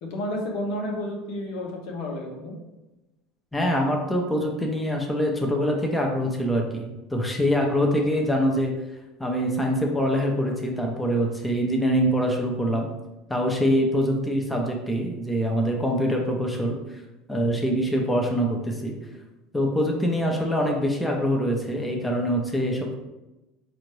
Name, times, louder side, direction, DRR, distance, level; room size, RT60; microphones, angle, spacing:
voice 1, 0.0-2.6, left 1 dB, 75° left, 0 dB, 0.9 m, -31 dB
voice 2, 3.5-8.7 9.2-12.9 13.3-16.8 17.3-18.9 19.5-22.9, equal, 5° left, 0 dB, 0.8 m, -24 dB
4.2 x 2.6 x 3.2 m, 1.0 s
supercardioid pair, 100°, 0 cm